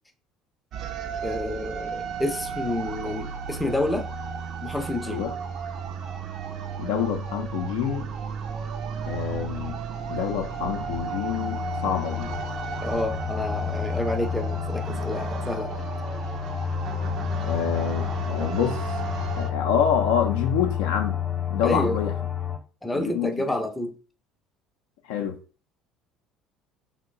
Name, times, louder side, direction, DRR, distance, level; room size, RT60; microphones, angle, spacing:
sound 1, 0.7-19.5, right 6 dB, 50° right, 0.4 m, -34 dB
voice 1, 1.2-4.1 4.6-5.3 12.8-15.9 21.6-22.0 22.8-24.0, left 1 dB, 5° left, 0.5 m, -29 dB
voice 2, 6.8-8.1 9.0-9.8 10.1-12.3 17.4-18.8 19.3-21.2 21.5-22.1 22.9-23.3 25.0-25.4, left 8 dB, 65° left, 0.4 m, -27 dB
sound 2, 10.6-22.6, left 9 dB, 30° left, 0.8 m, -30 dB
2.9 x 2.1 x 3.5 m
figure-of-eight pair, 60°, 0 cm